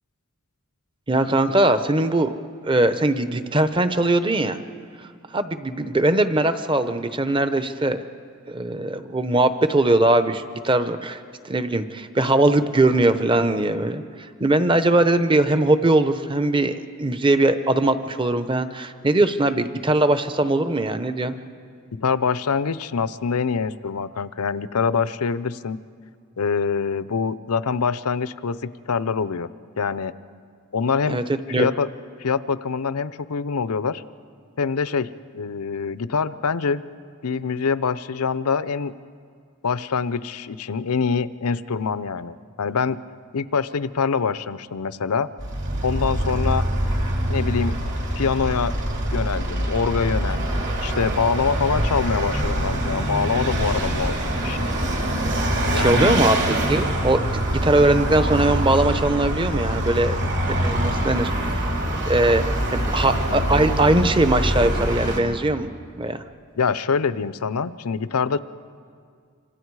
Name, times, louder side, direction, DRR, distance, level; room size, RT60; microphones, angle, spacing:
voice 1, 1.1-2.4 2.6-4.6 5.3-8.0 8.5-11.2 11.4-14.0 14.4-21.4 31.1-31.2 31.5-31.7 55.7-57.2 57.5-60.2 60.6-61.7 62.1-62.4 62.7-65.7 66.0-66.2, right 2 dB, 20° right, 10 dB, 0.8 m, -20 dB
voice 2, 21.9-25.8 26.4-29.5 29.8-30.1 30.7-31.2 31.5-31.9 32.2-34.0 34.6-36.8 37.2-38.9 39.6-43.0 43.3-45.3 45.8-46.6 47.3-47.8 48.1-48.8 49.1-54.7 55.7-56.2 66.6-68.4, left 5 dB, 90° left, 16 dB, 0.6 m, -24 dB
Vehicle, 45.4-65.2, right 1 dB, 50° right, 3.1 m, -24 dB
sound 1, 52.5-56.0, right 2 dB, 65° right, 5.8 m, -45 dB
26.5 x 25.5 x 4.8 m, 2.2 s
head